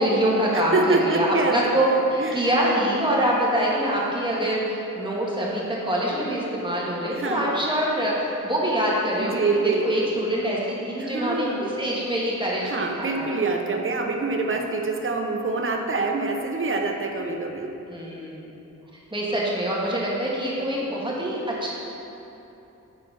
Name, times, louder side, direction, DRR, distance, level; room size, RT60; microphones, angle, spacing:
voice 1, 0.0-12.7 13.0-13.3 17.9-18.5 19.1-21.7, right 1 dB, 15° right, -5 dB, 1.7 m, -25 dB
voice 2, 0.5-2.5 7.1-7.5 9.2-10.1 11.0-11.7 12.6-17.7, right 3 dB, 40° right, 2 dB, 0.7 m, -26 dB
7.7 x 4.5 x 5.5 m, 3.0 s
wide cardioid pair, 70°, 31 cm